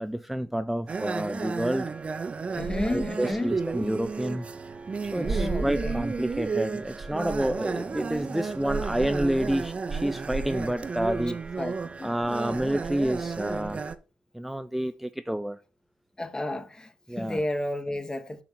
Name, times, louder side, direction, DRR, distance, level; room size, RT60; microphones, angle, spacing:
voice 1, 0.0-1.9 2.9-4.5 5.1-11.4 12.0-13.8 14.3-15.6 17.1-17.4, right 1 dB, 5° right, 0.4 m, -29 dB
sound 1, 0.9-13.9, right 4 dB, 35° right, 0.8 m, -32 dB
voice 2, 2.5-3.5 5.2-6.1 11.6-11.7 12.0-12.2 16.2-18.4, left 1 dB, 20° left, 1.2 m, -32 dB
6.4 x 5.6 x 4.2 m
supercardioid pair, 60°, 4 cm